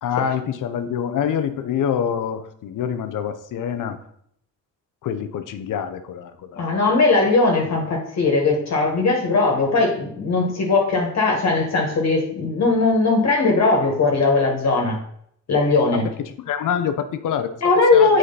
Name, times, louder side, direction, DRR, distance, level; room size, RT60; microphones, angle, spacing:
voice 1, 0.0-4.0 5.0-6.6 15.9-16.0 16.5-17.6 17.9-18.2, left 8 dB, 75° left, 9 dB, 0.8 m, -26 dB
voice 2, 6.6-15.0 15.5-16.1 17.6-18.2, left 3 dB, 55° left, 0 dB, 1.8 m, -19 dB
7.7 x 5.0 x 4.1 m, 0.68 s
cardioid pair, 95°, 31 cm